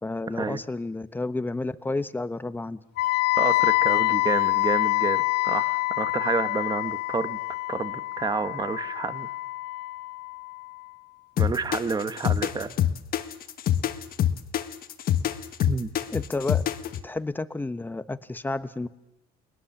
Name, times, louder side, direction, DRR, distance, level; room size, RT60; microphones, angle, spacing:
voice 1, 0.0-2.8 16.1-16.6 17.0-18.9, left 2 dB, 10° left, 12 dB, 1.0 m, -31 dB
Wind instrument woodwind instrument, 3.0-10.9, left 21 dB, 85° left, 0.8 m, -26 dB
voice 2, 3.4-7.4 7.7-9.3 11.4-12.7 15.6-15.9, right 4 dB, 25° right, 11 dB, 1.3 m, -29 dB
sound 1, 11.4-17.0, left 10 dB, 60° left, 1.4 m, -25 dB
29.5 x 21.0 x 7.2 m, 0.94 s
cardioid pair, 110°, 17 cm